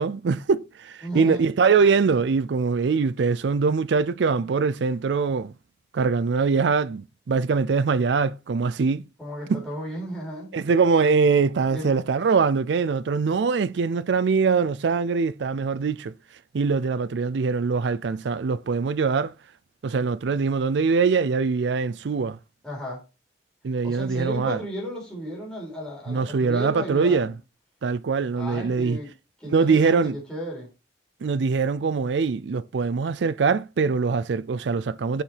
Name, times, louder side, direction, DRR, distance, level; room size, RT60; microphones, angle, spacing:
voice 1, 0.0-5.5 5.9-9.0 9.5-9.6 10.5-16.1 16.5-19.3 19.8-22.4 23.6-24.6 26.1-27.3 27.8-29.0 29.5-30.2 31.2-35.2, right 5 dB, 80° right, 0.4 m, -23 dB
voice 2, 1.0-1.4 9.2-10.5 11.7-11.9 22.6-23.0 23.8-27.3 28.3-29.1 29.4-30.7, equal, 5° left, 3.8 m, -34 dB
6.9 x 5.7 x 4.5 m
head